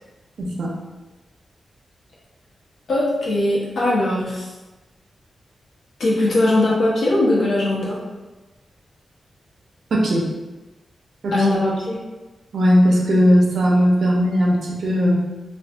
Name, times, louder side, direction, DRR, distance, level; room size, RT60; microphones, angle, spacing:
voice 1, 0.4-0.7 9.9-10.3 11.2-11.4 12.5-15.2, equal, 80° right, -2 dB, 0.6 m, -17 dB
voice 2, 2.9-4.5 6.0-8.0 11.3-12.0, left 1 dB, 75° left, -7 dB, 1.1 m, -20 dB
2.6 x 2.4 x 3.4 m, 1.1 s
wide cardioid pair, 105°, 0 cm